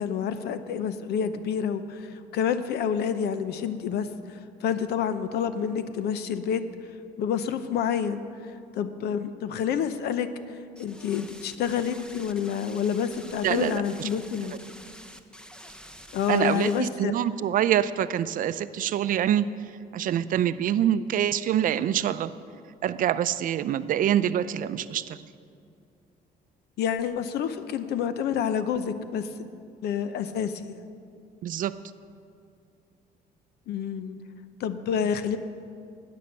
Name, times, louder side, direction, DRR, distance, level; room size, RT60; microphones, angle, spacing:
voice 1, 0.0-4.1 4.6-6.6 7.2-8.2 8.8-10.3 10.8-14.5 16.1-17.1 26.8-29.3 29.8-30.8 33.7-34.2 34.6-35.4, left 8 dB, 75° left, 12 dB, 0.7 m, -28 dB
sound 1, 10.8-16.8, equal, 5° left, 0.8 m, -47 dB
voice 2, 13.4-14.1 14.5-14.6 16.3-19.5 19.9-22.3 22.8-25.2 31.4-31.7, right 10 dB, 55° right, 14 dB, 0.5 m, -25 dB
13.0 x 9.5 x 6.6 m, 2.4 s
cardioid pair, 110°, 17 cm